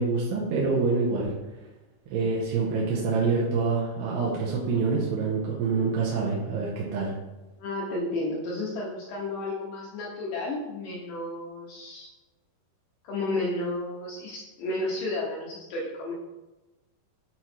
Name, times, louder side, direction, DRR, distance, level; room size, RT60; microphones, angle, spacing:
voice 1, 0.0-1.3 2.1-7.1, right 4 dB, 85° right, -5 dB, 3.0 m, -26 dB
voice 2, 7.6-12.1 13.0-16.1, left 2 dB, 70° left, -4 dB, 2.2 m, -32 dB
7.9 x 3.1 x 4.3 m, 1.1 s
omnidirectional pair, 4.7 m